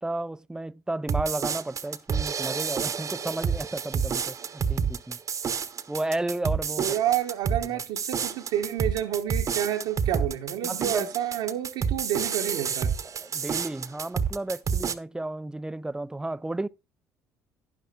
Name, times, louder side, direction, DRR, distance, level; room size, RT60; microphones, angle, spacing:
voice 1, 0.0-5.2 5.9-6.9 7.7-7.8 10.6-11.1 13.2-16.7, right 2 dB, 10° right, 0.4 m, -33 dB
sound 1, 1.1-14.9, right 6 dB, 40° right, 1.0 m, -29 dB
voice 2, 6.8-12.9, right 11 dB, 70° right, 1.1 m, -29 dB
12.0 x 10.0 x 2.4 m
hypercardioid pair, 55°, 8 cm